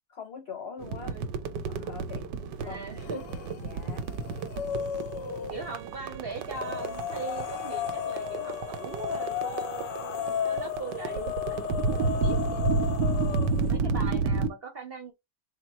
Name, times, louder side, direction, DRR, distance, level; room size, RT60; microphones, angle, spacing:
voice 1, 0.1-1.2 1.7-2.3 2.6-2.9 3.5-4.1, left 5 dB, 65° left, 0.6 m, -42 dB
sound 1, 0.8-14.5, right 4 dB, 85° right, 1.3 m, -31 dB
voice 2, 2.6-3.2 5.5-15.1, right 4 dB, 45° right, 0.8 m, -40 dB
sound 2, 3.0-3.6 3.9-5.8 6.5-13.7, left 9 dB, 85° left, 1.2 m, -34 dB
Bowed string instrument, 5.6-10.7, right 16 dB, 70° right, 1.0 m, -48 dB
3.9 x 2.2 x 4.3 m
omnidirectional pair, 1.8 m